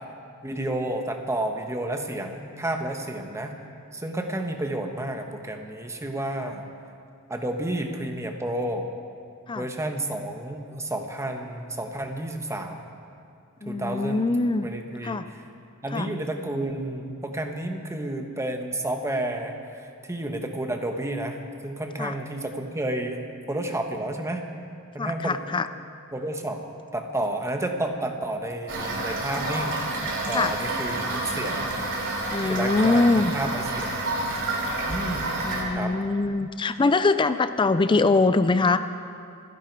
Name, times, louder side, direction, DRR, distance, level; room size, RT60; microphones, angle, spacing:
voice 1, 0.4-3.5 3.9-6.7 7.3-8.8 9.5-12.9 13.6-14.2 14.6-15.4 15.8-23.2 23.5-24.4 24.9-25.5 26.1-26.6 26.9-29.8 30.3-31.7 32.5-33.0 33.3-34.0 34.9-35.4 35.7-35.9, right 1 dB, 15° right, 4 dB, 1.2 m, -31 dB
voice 2, 13.6-14.7 15.0-15.3 15.9-16.1 22.0-22.1 25.0-25.7 30.3-30.5 32.3-33.3 35.4-38.8, left 3 dB, 20° left, 11 dB, 0.4 m, -23 dB
Toilet flush / Fill (with liquid), 28.7-35.6, right 2 dB, 60° right, 2.9 m, -29 dB
27.0 x 11.0 x 4.6 m, 2.4 s
head